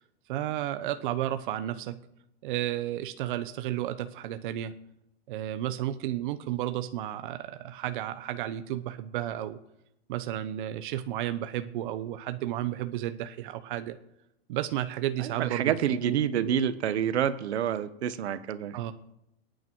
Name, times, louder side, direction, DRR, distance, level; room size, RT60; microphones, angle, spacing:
voice 1, 0.3-2.0 2.4-4.7 5.3-9.6 10.1-14.0 14.5-15.8 16.1-16.5 18.7-18.9, right 12 dB, 50° right, 10 dB, 0.9 m, -32 dB
voice 2, 15.2-18.9, right 9 dB, 80° right, 13 dB, 1.2 m, -28 dB
26.0 x 9.3 x 4.6 m, 0.81 s
supercardioid pair, 155°, 32 cm